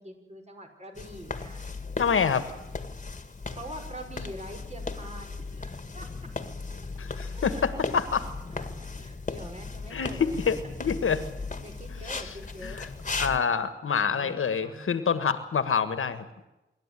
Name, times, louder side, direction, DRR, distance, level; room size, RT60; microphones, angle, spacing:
voice 1, 0.0-1.7 3.5-6.3 7.3-7.8 8.5-10.5 11.6-12.8 13.1-13.5 14.0-14.9, right 1 dB, 30° right, 3 dB, 5.8 m, -45 dB
sound 1, 0.9-13.4, left 4 dB, 35° left, 1.9 m, -37 dB
voice 2, 2.0-2.4 7.0-8.2 9.9-11.2 12.1-12.3 12.6-12.9 13.2-16.2, left 6 dB, 85° left, 11 dB, 1.7 m, -27 dB
26.0 x 12.0 x 10.0 m, 0.95 s
wide cardioid pair, 80°, 21 cm